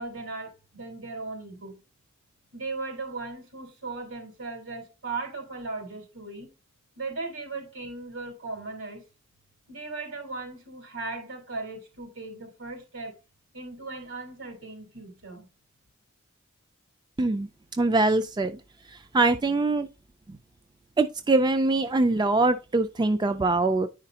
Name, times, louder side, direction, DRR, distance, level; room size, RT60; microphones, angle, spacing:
voice 1, 0.0-1.8 2.5-6.5 7.0-9.0 9.7-13.2 13.5-15.5, right 3 dB, 70° right, 3.8 m, -37 dB
voice 2, 17.2-17.5 17.8-18.6 18.9-19.9 20.3-20.4 21.0-23.9, right 2 dB, 20° right, 0.4 m, -23 dB
10.5 x 5.0 x 2.8 m
head